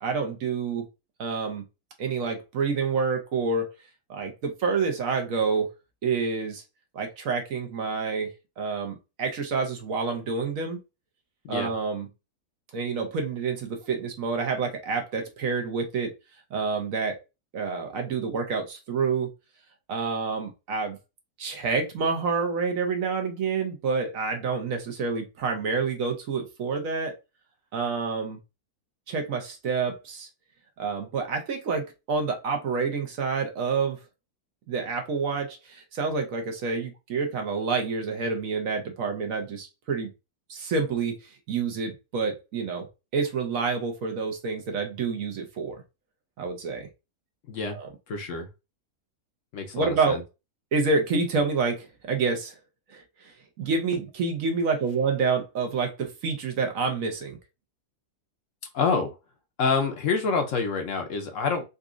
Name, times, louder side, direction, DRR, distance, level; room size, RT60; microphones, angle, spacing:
voice 1, 0.0-0.9 1.2-1.6 2.0-3.7 4.1-5.7 6.0-6.6 6.9-10.8 11.5-12.1 12.7-16.1 16.5-17.2 17.5-19.3 19.9-21.0 21.4-27.2 27.7-28.4 29.1-30.3 30.8-34.0 34.7-40.1 40.5-42.9 43.1-45.8 46.4-46.9 47.6-47.9 49.7-50.2 50.7-52.6 52.9-57.4, right 4 dB, 65° right, 1.1 m, -28 dB
voice 2, 47.5-47.8 48.1-48.5 49.5-50.2 58.7-59.2 59.6-61.6, left 4 dB, 65° left, 0.9 m, -27 dB
3.9 x 2.4 x 2.4 m
omnidirectional pair, 1.6 m